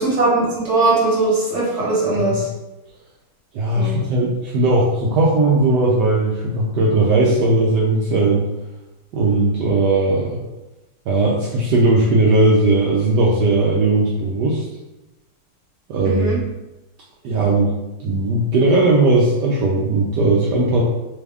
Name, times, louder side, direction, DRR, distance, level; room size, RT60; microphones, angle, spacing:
voice 1, 0.0-2.5 3.7-4.0 16.0-16.4, right 2 dB, 40° right, -6 dB, 1.2 m, -19 dB
voice 2, 3.5-8.4 9.1-10.3 11.1-14.6 15.9-16.3 17.2-17.7 18.0-20.8, right 2 dB, 80° right, -3 dB, 0.9 m, -17 dB
3.4 x 2.3 x 3.4 m, 0.99 s
omnidirectional pair, 2.3 m